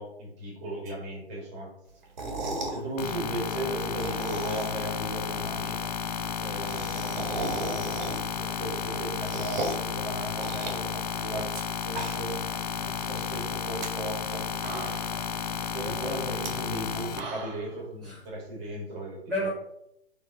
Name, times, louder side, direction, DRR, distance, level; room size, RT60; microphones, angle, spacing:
voice 1, 0.0-1.7 2.7-5.8 6.4-11.5 11.8-12.4 12.7-14.5 15.7-19.3, right 1 dB, 20° right, 2.4 m, -36 dB
sound 1, 2.0-2.8 3.8-4.9 5.3-5.4 5.6-5.7 5.9-6.0 6.2-8.4 8.8-9.9 10.4-11.6 11.9-12.5 12.8-12.9 13.6-13.9 14.3-14.4 14.6-15.3 16.3-16.5 16.9-17.7, right 2 dB, 45° right, 1.7 m, -36 dB
sound 2, 3.0-17.2, left 7 dB, 40° left, 0.6 m, -33 dB
voice 2, 14.5-15.0 15.8-16.3 18.0-18.2 19.3-19.5, equal, ahead, 1.6 m, -34 dB
6.2 x 3.5 x 5.1 m
figure-of-eight pair, 130°, 33 cm